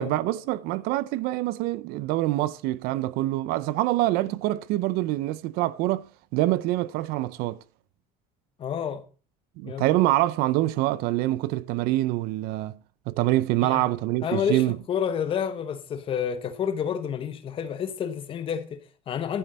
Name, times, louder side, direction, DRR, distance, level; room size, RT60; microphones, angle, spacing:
voice 1, 0.0-7.6 9.6-12.8 13.1-14.8, right 16 dB, 65° right, 0.6 m, -25 dB
voice 2, 8.6-9.0 9.6-10.0 13.6-13.9 14.2-19.4, left 8 dB, 30° left, 1.2 m, -29 dB
12.0 x 9.3 x 4.2 m
cardioid pair, 165°, 17 cm